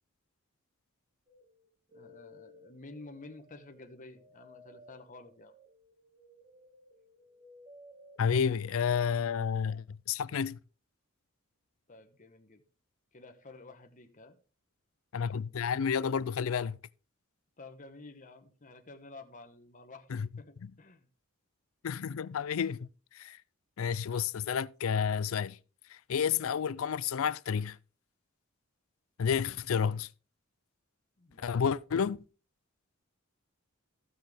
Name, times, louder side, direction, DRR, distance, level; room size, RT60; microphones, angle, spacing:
sound 1, 1.3-9.5, equal, 25° right, 1.7 m, -58 dB
voice 1, 1.9-5.5 11.9-12.6 13.1-14.4 17.6-20.1 20.4-21.1 31.2-31.6, left 2 dB, 40° left, 1.1 m, -51 dB
voice 2, 8.2-10.6 15.1-16.8 20.1-20.3 20.6-20.7 21.8-23.4 23.8-25.6 25.9-27.8 29.2-30.1 31.4-32.2, left 7 dB, 70° left, 0.4 m, -30 dB
15.5 x 6.0 x 3.4 m
head